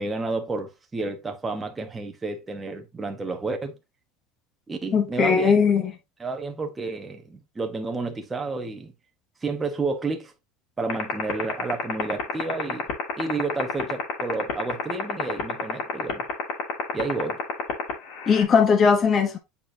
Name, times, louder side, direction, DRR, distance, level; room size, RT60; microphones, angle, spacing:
voice 1, 0.0-3.7 4.7-5.6 6.2-8.9 9.4-10.3 10.8-12.9 13.2-16.2 16.9-17.4, right 3 dB, 10° right, 1.1 m, -30 dB
voice 2, 4.9-5.9 18.3-19.4, left 6 dB, 25° left, 1.0 m, -19 dB
sound 1, 10.9-18.4, left 18 dB, 55° left, 2.4 m, -26 dB
8.5 x 4.3 x 2.8 m
cardioid pair, 165°, 0 cm